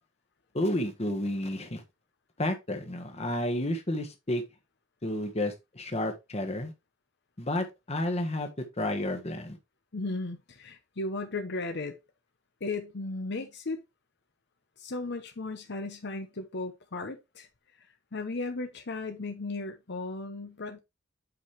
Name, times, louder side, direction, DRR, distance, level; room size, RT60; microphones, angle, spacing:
voice 1, 0.5-1.8 2.4-4.4 5.0-6.7 7.4-8.5 8.8-9.6, left 1 dB, 35° left, 1.4 m, -31 dB
voice 2, 9.9-12.0 12.6-13.8 14.8-17.5 17.8-20.8, left 3 dB, 60° left, 0.9 m, -36 dB
8.4 x 5.1 x 3.2 m
head